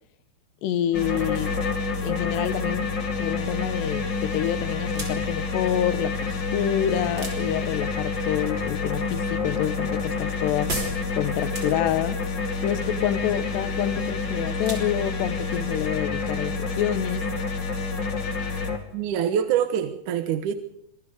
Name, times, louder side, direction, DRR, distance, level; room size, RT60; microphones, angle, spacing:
voice 1, 0.6-1.6 2.0-2.9 3.2-10.8 11.2-12.2 12.6-17.3, left 11 dB, 85° left, 3.3 m, -27 dB
sound 1, 0.9-18.8, left 4 dB, 35° left, 2.5 m, -28 dB
sound 2, 4.8-16.8, right 2 dB, 25° right, 5.4 m, -41 dB
voice 2, 18.9-20.5, right 9 dB, 60° right, 2.3 m, -25 dB
26.0 x 22.5 x 5.1 m
omnidirectional pair, 4.8 m